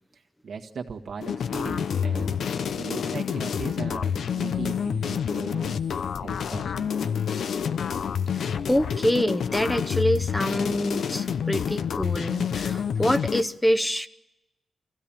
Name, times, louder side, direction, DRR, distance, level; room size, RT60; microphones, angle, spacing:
voice 1, 0.4-2.4 2.8-5.8 6.2-6.9, right 5 dB, 75° right, 3 dB, 1.8 m, -38 dB
sound 1, 1.2-13.4, left 7 dB, 85° left, 0.7 m, -28 dB
voice 2, 8.3-14.1, equal, 15° left, 9 dB, 0.8 m, -26 dB
24.5 x 16.0 x 8.9 m, 0.99 s
cardioid pair, 80°, 0 cm